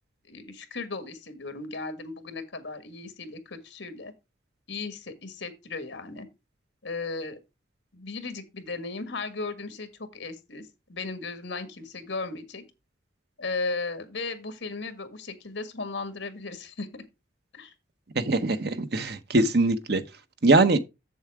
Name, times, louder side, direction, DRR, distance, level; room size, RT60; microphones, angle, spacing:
voice 1, 0.3-4.1 4.7-6.3 6.8-7.4 7.9-12.6 13.4-17.0 17.5-17.7, left 3 dB, 70° left, 1.6 m, -36 dB
voice 2, 18.1-20.0 20.4-20.8, right 2 dB, 55° right, 0.9 m, -22 dB
7.2 x 7.0 x 4.7 m
head